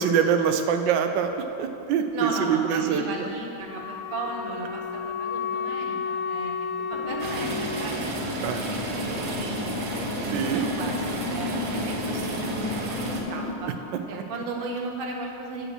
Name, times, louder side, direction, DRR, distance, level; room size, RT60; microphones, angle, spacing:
voice 1, 0.0-3.3 8.4-8.7 10.3-10.8 14.1-14.2, right 7 dB, 80° right, 7 dB, 1.2 m, -25 dB
voice 2, 2.1-8.4 8.6-9.8 10.2-13.7 14.1-15.7, right 2 dB, 40° right, 0 dB, 0.8 m, -35 dB
Wind instrument woodwind instrument, 3.6-8.0, left 6 dB, 85° left, 1.4 m, -32 dB
sound 1, 6.9-13.5, left 3 dB, 65° left, 1.2 m, -33 dB
sound 2, 7.2-13.2, right 2 dB, 65° right, 1.4 m, -33 dB
8.8 x 5.1 x 6.5 m, 2.9 s
omnidirectional pair, 2.0 m